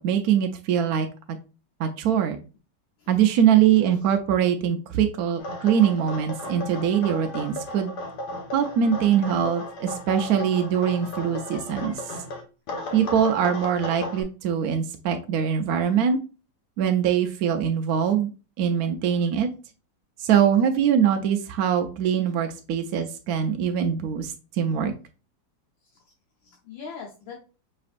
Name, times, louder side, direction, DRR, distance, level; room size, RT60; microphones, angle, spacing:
voice 1, 0.0-1.4 1.8-2.4 3.1-7.9 8.5-11.9 12.9-16.2 16.8-18.3 18.6-19.5 20.2-24.9, right 8 dB, 75° right, 5 dB, 0.9 m, -23 dB
voice 2, 3.0-3.6 3.9-4.0 26.4-27.3, left 5 dB, 85° left, -3 dB, 1.7 m, -42 dB
sound 1, 5.4-12.4 12.7-14.2, left 1 dB, 65° left, 1.5 m, -35 dB
5.1 x 3.2 x 2.5 m, 0.33 s
omnidirectional pair, 2.0 m